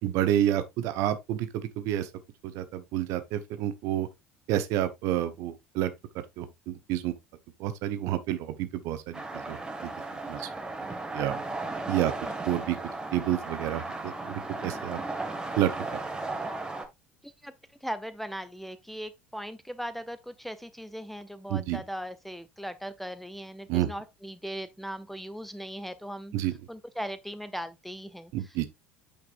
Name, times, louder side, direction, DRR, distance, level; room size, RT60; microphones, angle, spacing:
voice 1, 0.0-2.1 2.4-4.1 4.5-5.9 6.4-7.1 7.6-9.9 10.3-10.5 11.1-11.3 11.9-12.1 12.5-12.8 13.1-15.0 15.6-15.7 21.5-21.8 23.7-23.9 26.3-26.5 28.3-28.7, right 12 dB, 55° right, 0.9 m, -29 dB
sound 1, 9.1-16.9, right 2 dB, 15° right, 1.4 m, -35 dB
voice 2, 17.8-26.3 26.7-28.7, equal, ahead, 0.6 m, -39 dB
8.5 x 5.2 x 2.5 m
figure-of-eight pair, 65°, 6 cm